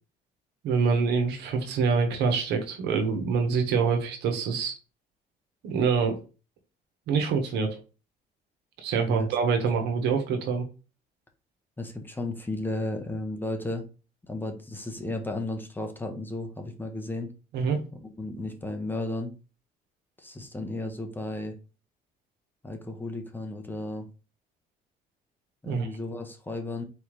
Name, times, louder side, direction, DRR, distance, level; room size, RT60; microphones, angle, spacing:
voice 1, 0.6-4.7 5.6-6.2 7.1-7.8 8.8-10.7 17.5-17.8 25.6-25.9, right 5 dB, 80° right, 5 dB, 1.2 m, -25 dB
voice 2, 11.8-13.8 14.3-17.3 18.2-19.3 20.2-21.5 22.6-24.1 25.6-26.8, left 2 dB, 10° left, 3 dB, 1.0 m, -34 dB
4.3 x 3.5 x 3.1 m, 0.33 s
cardioid pair, 110°, 17 cm